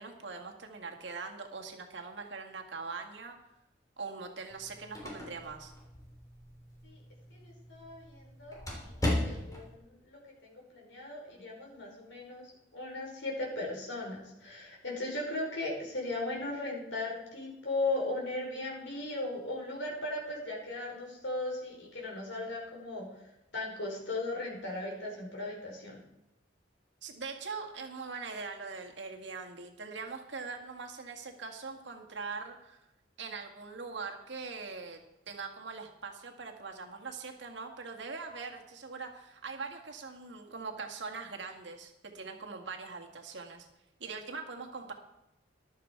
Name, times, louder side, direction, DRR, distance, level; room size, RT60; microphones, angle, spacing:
voice 1, 0.0-3.4 4.0-5.7 27.0-32.8 33.2-35.0 35.3-43.7 44.0-44.9, right 4 dB, 75° right, 2 dB, 1.9 m, -42 dB
sound 1, 4.5-9.7, left 1 dB, 20° left, 3.3 m, -38 dB
voice 2, 7.3-23.3 23.5-26.0, left 2 dB, 85° left, -1 dB, 4.7 m, -37 dB
14.0 x 12.0 x 4.6 m, 0.92 s
head